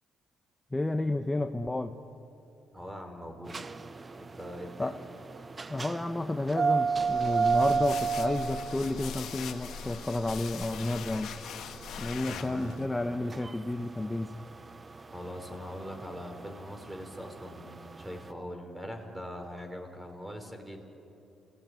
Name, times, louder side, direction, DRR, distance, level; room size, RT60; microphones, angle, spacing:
voice 1, 0.7-1.9 4.8-5.0 5.7-11.4 12.0-14.4, left 2 dB, 15° left, 6 dB, 0.9 m, -31 dB
voice 2, 2.7-3.9 4.2-5.1 12.2-12.9 15.1-20.8, equal, 10° right, 4 dB, 4.2 m, -42 dB
sound 1, 3.5-18.2, right 5 dB, 30° right, 0.6 m, -32 dB
sound 2, 6.9-12.8, left 7 dB, 75° left, 1.4 m, -41 dB
29.0 x 18.0 x 9.3 m, 2.9 s
cardioid pair, 90°, 0 cm